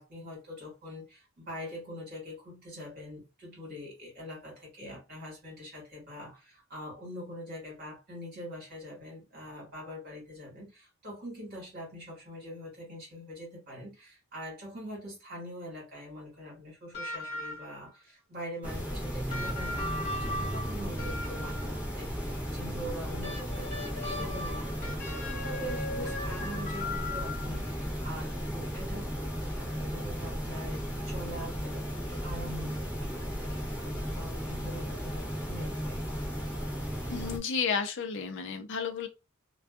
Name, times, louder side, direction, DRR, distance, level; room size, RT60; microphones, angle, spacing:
voice 1, 0.0-25.0 25.2-36.0, equal, 45° right, 1.5 m, -44 dB
sound 1, 16.9-17.9 19.3-21.9 23.2-27.7 29.0-29.1, left 2 dB, 30° left, 1.2 m, -38 dB
sound 2, 18.6-37.4, equal, 5° right, 0.8 m, -35 dB
voice 2, 37.1-39.1, left 6 dB, 60° left, 0.5 m, -32 dB
2.5 x 2.3 x 2.4 m
head